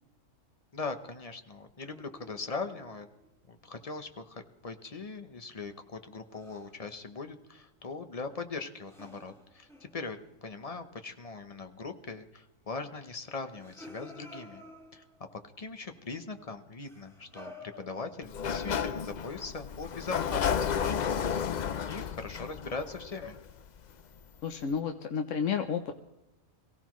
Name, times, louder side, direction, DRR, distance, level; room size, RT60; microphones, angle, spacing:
voice 1, 0.7-3.1 3.5-14.6 14.9-15.0 15.6-21.3 21.6-23.4, left 4 dB, 30° left, 7 dB, 0.9 m, -40 dB
sound 1, 1.9-3.3 6.3-6.8 8.9-10.6 13.4-15.3 16.8-18.6, left 1 dB, ahead, 2.0 m, -52 dB
Sliding door, 18.2-23.9, left 7 dB, 55° left, 0.5 m, -32 dB
voice 2, 24.4-25.9, left 7 dB, 75° left, 5 dB, 1.1 m, -31 dB
22.5 x 16.0 x 3.1 m, 0.98 s
omnidirectional pair, 1.3 m